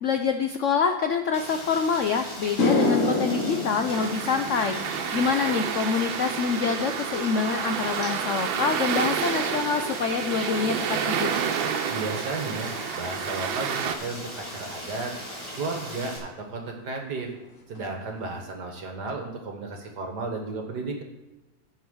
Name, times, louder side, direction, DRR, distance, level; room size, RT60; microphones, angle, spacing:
voice 1, 0.0-11.3, left 6 dB, 90° left, 6 dB, 0.6 m, -26 dB
Rain, 1.3-16.2, equal, 15° right, 3.5 m, -39 dB
sound 1, 1.9-2.0 2.4-10.9 11.2-11.6 15.2-15.3 17.0-17.1 17.3-17.5 17.7-18.3, left 2 dB, 45° left, 1.6 m, -31 dB
sound 2, 3.9-14.0, right 7 dB, 80° right, 1.6 m, -30 dB
voice 2, 11.9-12.7 13.0-15.1 15.6-17.3 17.7-21.0, right 3 dB, 60° right, 2 dB, 1.9 m, -33 dB
10.0 x 5.4 x 7.7 m, 1.1 s
omnidirectional pair, 2.1 m